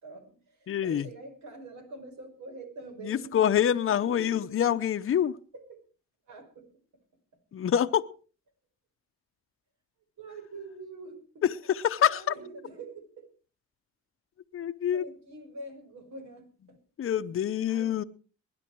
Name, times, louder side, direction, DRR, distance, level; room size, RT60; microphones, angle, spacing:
voice 1, 0.0-5.1 5.5-5.8 6.3-6.7 10.2-13.3 14.9-16.8 17.4-18.1, right 3 dB, 70° right, 5.3 m, -46 dB
voice 2, 0.7-1.1 3.0-5.4 7.5-8.1 11.7-12.2 14.5-15.0 17.0-18.0, left 9 dB, 45° left, 0.8 m, -26 dB
21.0 x 10.5 x 4.6 m
cardioid pair, 90°, 30 cm